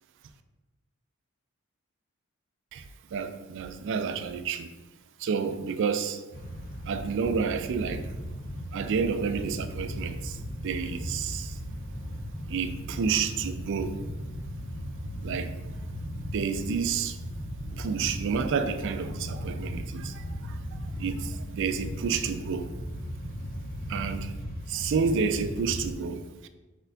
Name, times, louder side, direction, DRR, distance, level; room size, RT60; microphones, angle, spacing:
voice 1, 3.1-4.7 5.2-6.2 6.9-8.1 8.7-11.6 12.5-14.0 15.2-15.5 16.3-17.2 17.8-22.7 23.9-24.3 24.7-26.5, right 6 dB, 60° right, 0.3 m, -30 dB
sound 1, 6.3-25.9, equal, 40° left, 0.6 m, -37 dB
4.4 x 4.2 x 2.7 m
head